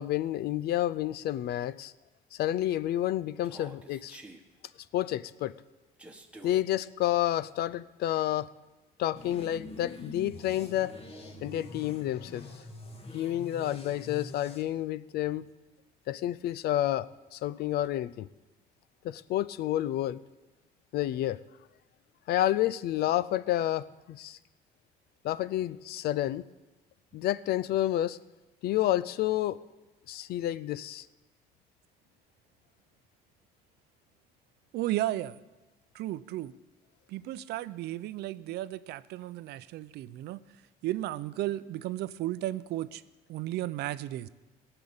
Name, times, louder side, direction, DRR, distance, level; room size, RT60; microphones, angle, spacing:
voice 1, 0.0-1.9 2.3-4.2 4.9-5.5 6.4-8.5 9.0-11.0 11.4-12.5 13.1-15.5 16.1-18.3 19.0-20.2 20.9-21.4 22.3-24.4 25.2-26.4 27.1-28.2 28.6-29.6 30.1-31.1, left 13 dB, 70° left, 18 dB, 0.5 m, -30 dB
Human voice, 3.4-4.4 6.0-6.6, right 2 dB, 5° right, 1.5 m, -48 dB
sound 1, 9.2-14.6, left 2 dB, 35° left, 1.8 m, -45 dB
voice 2, 34.7-35.4 35.9-36.5 37.1-40.4 40.8-43.0 43.3-44.3, right 15 dB, 80° right, 15 dB, 0.6 m, -34 dB
17.5 x 6.8 x 8.8 m, 1.1 s
cardioid pair, 110°, 17 cm